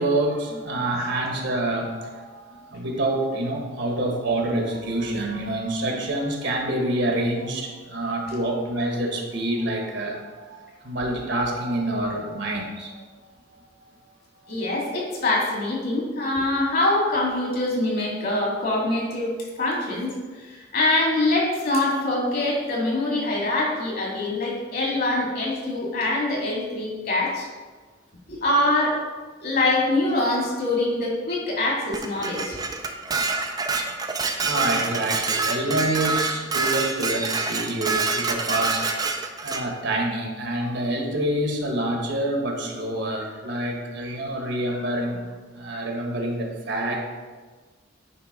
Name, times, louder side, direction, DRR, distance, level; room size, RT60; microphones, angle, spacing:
voice 1, 0.0-12.9 34.2-38.9 39.4-45.2 45.5-47.0, right 1 dB, 60° right, 1 dB, 1.3 m, -27 dB
voice 2, 14.5-27.5 28.3-29.0 29.4-32.6, left 2 dB, 50° left, -3 dB, 2.2 m, -24 dB
Dishes pots and pans, 31.9-39.6, right 4 dB, 20° right, 0.5 m, -26 dB
9.8 x 3.4 x 5.0 m, 1.4 s
head